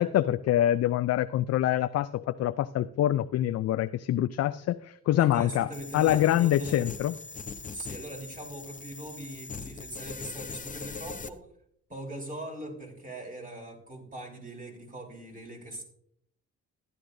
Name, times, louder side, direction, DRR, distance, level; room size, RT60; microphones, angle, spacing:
voice 1, 0.0-7.1, left 12 dB, 55° left, 12 dB, 0.4 m, -25 dB
voice 2, 5.2-6.9 7.7-11.5 11.9-15.8, right 1 dB, 25° right, 0 dB, 3.7 m, -41 dB
sound 1, 5.7-11.3, left 4 dB, 25° left, 0.7 m, -41 dB
14.5 x 10.5 x 2.6 m, 0.70 s
cardioid pair, 90°, 30 cm